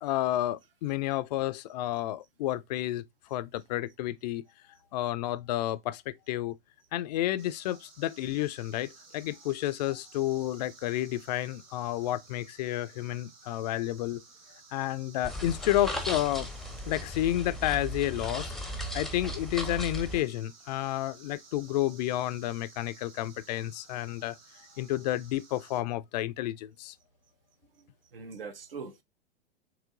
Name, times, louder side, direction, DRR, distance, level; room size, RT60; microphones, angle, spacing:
voice 1, 0.0-3.0 3.3-4.4 4.9-6.5 6.9-14.2 14.7-16.5 16.9-18.5 18.9-24.4 24.8-26.9, left 14 dB, 45° left, 0.4 m, -31 dB
sound 1, 7.4-25.8, right 4 dB, 50° right, 2.5 m, -55 dB
sound 2, 15.2-20.2, equal, ahead, 0.6 m, -36 dB
voice 2, 27.7-29.0, right 5 dB, 70° right, 0.9 m, -43 dB
4.8 x 3.1 x 2.4 m
figure-of-eight pair, 95°, 29 cm